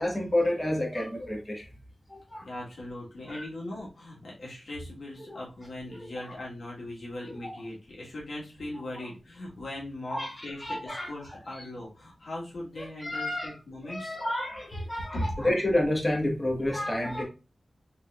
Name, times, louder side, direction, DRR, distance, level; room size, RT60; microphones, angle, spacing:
voice 1, 0.0-1.6 2.1-2.5 3.3-3.4 5.2-5.4 5.9-6.4 7.4-7.5 8.9-9.1 10.1-11.1 11.6-11.7 12.8-13.6 13.8-17.2, left 1 dB, 20° left, -1 dB, 1.7 m, -30 dB
voice 2, 2.4-14.2 15.1-15.2, left 1 dB, 75° left, -4 dB, 1.8 m, -39 dB
4.1 x 4.0 x 2.6 m, 0.30 s
wide cardioid pair, 70°, 0 cm